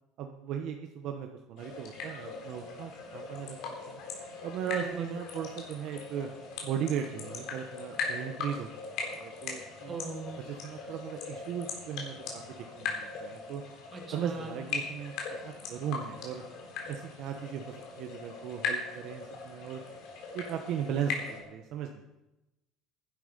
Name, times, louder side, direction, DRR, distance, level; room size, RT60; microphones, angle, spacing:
voice 1, 0.2-4.0 4.4-6.3 6.6-9.9 10.5-13.6 14.1-16.4 16.9-19.8 20.3-22.0, right 8 dB, 55° right, 4 dB, 1.1 m, -37 dB
sound 1, 1.6-21.4, left 4 dB, 60° left, 3.9 m, -40 dB
voice 2, 4.7-5.1 9.9-10.4 13.9-14.6, right 4 dB, 25° right, 1 dB, 2.8 m, -40 dB
15.5 x 11.0 x 5.2 m, 0.95 s
cardioid pair, 155°, 0 cm